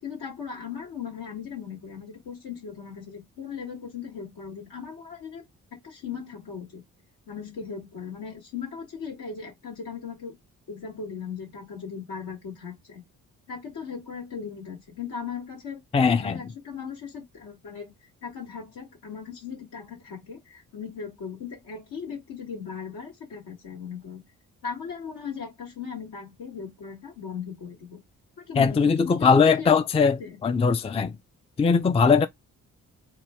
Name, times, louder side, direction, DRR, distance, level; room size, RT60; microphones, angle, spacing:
voice 1, 0.0-5.4 5.7-6.8 7.3-10.4 10.7-13.0 13.5-15.8 16.2-17.9 18.2-24.2 24.6-28.0 28.5-30.4, left 6 dB, 75° left, 1.8 m, -38 dB
voice 2, 15.9-16.4 28.6-31.1 31.6-32.3, left 5 dB, 15° left, 0.4 m, -20 dB
3.6 x 2.2 x 4.3 m
hypercardioid pair, 45°, 40 cm